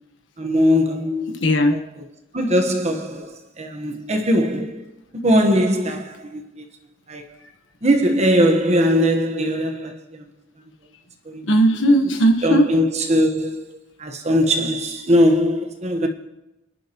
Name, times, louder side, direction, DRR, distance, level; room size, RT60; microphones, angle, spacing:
voice 1, 0.4-1.4 1.7-2.0 2.3-4.9 5.1-6.6 7.1-7.2 7.8-10.2 11.3-11.5 12.4-16.1, equal, 35° right, 1.3 m, -20 dB
voice 2, 1.4-1.7 11.4-12.7, right 1 dB, 70° left, 1.4 m, -17 dB
29.0 x 11.0 x 3.1 m
head